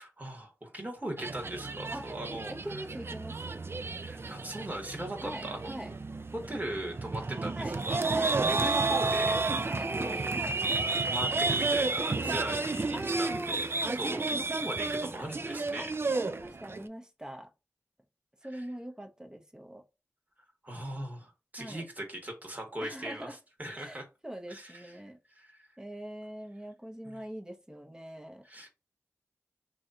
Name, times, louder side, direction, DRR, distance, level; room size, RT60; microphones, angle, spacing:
voice 1, 0.0-2.8 4.0-5.7 6.3-9.4 9.9-10.4 11.1-13.7 13.9-15.9 18.5-18.6 20.6-23.3 23.6-24.1 24.5-24.9 25.4-25.6 27.0-27.2 28.4-28.7, right 1 dB, 30° right, 1.4 m, -39 dB
sound 1, 1.2-16.8, right 3 dB, 45° right, 0.4 m, -31 dB
voice 2, 1.9-3.6 5.2-5.9 7.6-8.8 9.6-10.6 12.2-12.5 12.9-14.3 15.8-17.5 18.4-19.8 21.6-21.9 22.8-23.4 23.7-25.2 25.8-28.4, equal, 15° right, 0.9 m, -42 dB
3.1 x 2.8 x 3.7 m
cardioid pair, 40°, 6 cm